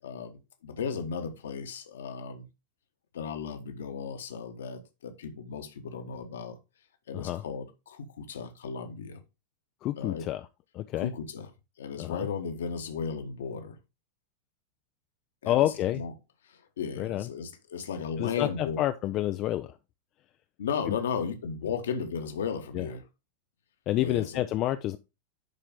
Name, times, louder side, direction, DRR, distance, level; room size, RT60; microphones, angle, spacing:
voice 1, 0.0-2.5 3.1-6.6 7.1-9.2 10.0-10.3 11.0-11.5 11.8-13.8 15.4-15.7 15.9-16.1 16.4-18.8 20.6-23.0 24.0-24.4, left 6 dB, 65° left, 1.3 m, -35 dB
voice 2, 9.8-10.5 10.7-11.1 12.0-12.3 15.5-16.0 17.0-17.3 18.2-19.7 20.9-21.0 22.7-22.9 23.9-25.0, left 14 dB, 35° left, 0.5 m, -29 dB
10.5 x 4.4 x 3.8 m
figure-of-eight pair, 90°, 0 cm